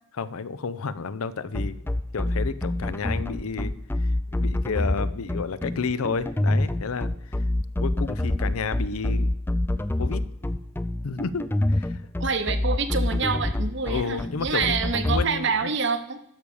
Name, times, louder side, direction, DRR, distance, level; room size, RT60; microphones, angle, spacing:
voice 1, 0.2-1.8 2.1-3.7 4.0-7.4 7.8-9.3 10.0-10.2 11.0-12.0 13.9-14.8 15.1-15.7, left 5 dB, 80° left, 16 dB, 0.6 m, -31 dB
sound 1, 1.5-15.2, left 1 dB, 10° left, 0.3 m, -26 dB
voice 2, 12.2-16.2, right 5 dB, 55° right, 9 dB, 0.9 m, -27 dB
12.5 x 4.9 x 6.9 m, 0.73 s
head